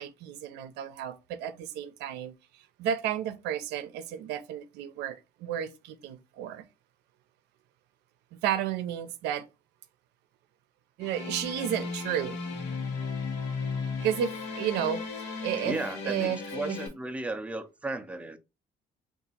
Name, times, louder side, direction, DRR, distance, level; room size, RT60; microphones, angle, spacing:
voice 1, 0.0-6.6 8.3-9.5 11.0-12.4 14.0-15.8 16.0-16.8, right 10 dB, 85° right, 0.5 m, -32 dB
sound 1, 11.0-16.9, left 4 dB, 85° left, 1.0 m, -35 dB
voice 2, 15.6-18.4, right 2 dB, 5° right, 0.5 m, -35 dB
2.8 x 2.4 x 3.9 m
cardioid pair, 110°, 17 cm